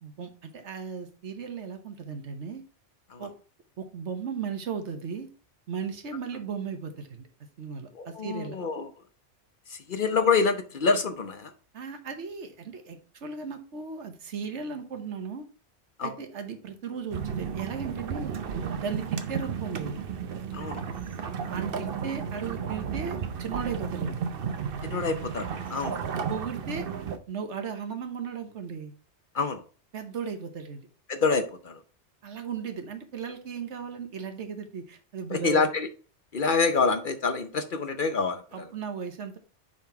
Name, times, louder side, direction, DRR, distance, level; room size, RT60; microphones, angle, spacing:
voice 1, 0.0-2.6 3.2-3.3 3.8-5.3 5.7-7.2 7.6-8.6 11.7-15.4 16.0-18.3 18.7-20.0 21.4-24.2 26.3-26.8 27.3-28.9 29.9-30.9 32.2-35.6 38.5-39.4, right 6 dB, 75° right, 6 dB, 1.4 m, -36 dB
voice 2, 7.9-8.9 9.7-11.5 16.0-16.1 20.5-20.8 24.8-26.0 29.3-29.6 31.1-31.8 35.3-35.9 36.3-38.6, left 4 dB, 50° left, 8 dB, 0.8 m, -27 dB
sound 1, 17.1-27.2, right 7 dB, 55° right, 0.9 m, -33 dB
5.5 x 5.1 x 4.5 m, 0.37 s
omnidirectional pair, 1.2 m